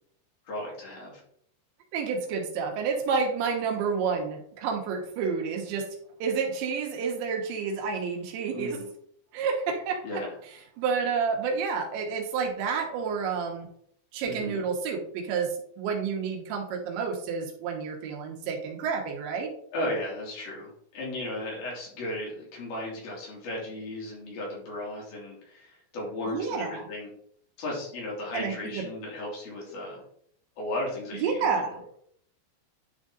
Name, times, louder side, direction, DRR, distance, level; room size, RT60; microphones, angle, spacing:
voice 1, 0.5-1.2 8.5-8.9 10.0-10.3 14.2-14.6 19.7-27.1 27.6-30.0 30.6-31.6, left 1 dB, 60° left, -4 dB, 4.2 m, -35 dB
voice 2, 1.9-5.9 6.2-8.8 9.3-10.2 10.8-13.7 14.1-19.5 26.3-26.9 28.3-28.8 31.2-31.8, right 5 dB, 90° right, 2 dB, 3.6 m, -29 dB
10.0 x 4.1 x 3.8 m, 0.65 s
omnidirectional pair, 5.0 m